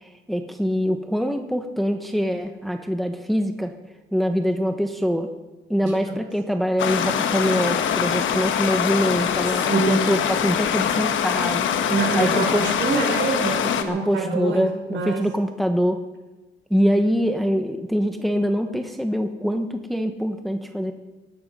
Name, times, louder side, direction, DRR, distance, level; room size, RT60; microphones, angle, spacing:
voice 1, 0.3-3.7 4.1-5.3 5.7-11.8 12.1-12.6 13.8-16.0 16.7-20.9, equal, ahead, 6 dB, 1.2 m, -24 dB
voice 2, 5.8-6.1 9.4-10.2 11.8-15.3, right 4 dB, 70° right, 0 dB, 5.5 m, -26 dB
Stream, 6.8-13.8, left 8 dB, 75° left, 1.3 m, -23 dB
18.5 x 11.0 x 5.6 m, 1.1 s
cardioid pair, 90°, 20 cm